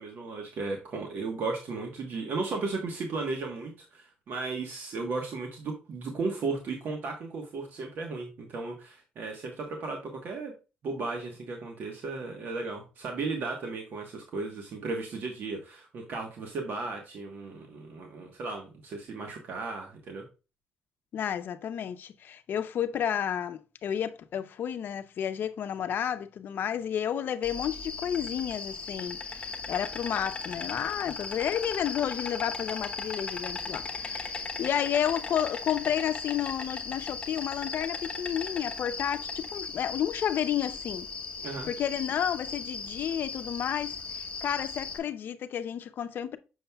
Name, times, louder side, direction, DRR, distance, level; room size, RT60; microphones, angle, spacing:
voice 1, 0.0-10.5 10.8-20.2 41.4-41.7, right 3 dB, 65° right, 1.2 m, -35 dB
voice 2, 21.1-41.1 41.7-46.4, left 9 dB, 60° left, 0.6 m, -31 dB
Insect, 27.4-45.0, left 4 dB, 30° left, 0.9 m, -37 dB
6.9 x 6.3 x 2.3 m
cardioid pair, 120°, 4 cm